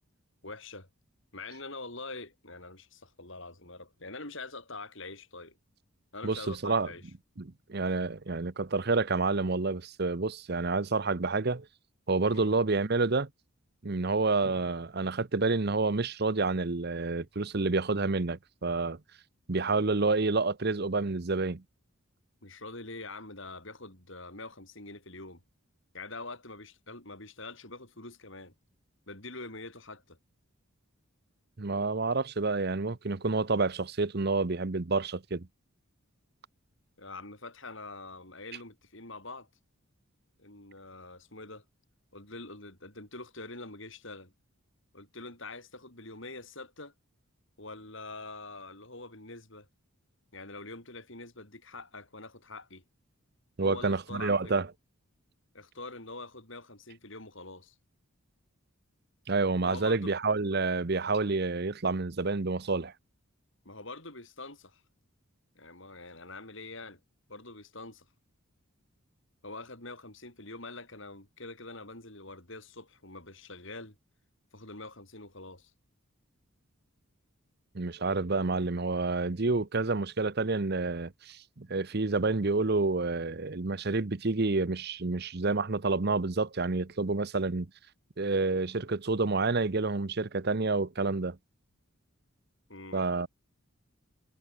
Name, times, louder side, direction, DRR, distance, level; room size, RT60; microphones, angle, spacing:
voice 1, 0.4-0.9 1.3-5.6 6.1-7.1 12.2-12.5 22.4-25.4 25.9-28.5 29.1-30.2 37.0-39.5 40.4-41.6 42.1-44.3 44.9-46.9 47.6-49.7 50.3-52.8 53.6-54.5 55.5-57.8 59.6-60.1 63.6-64.8 65.6-67.0 67.3-68.1 69.4-74.0 74.5-75.7 92.7-93.1, left 3 dB, 60° left, 5.9 m, -45 dB
voice 2, 6.2-6.9 7.4-11.7 12.1-13.3 13.8-19.0 19.5-21.6 31.6-35.5 53.6-54.7 59.3-62.9 77.7-87.7 88.2-91.4 92.9-93.3, right 3 dB, 45° right, 0.8 m, -29 dB
head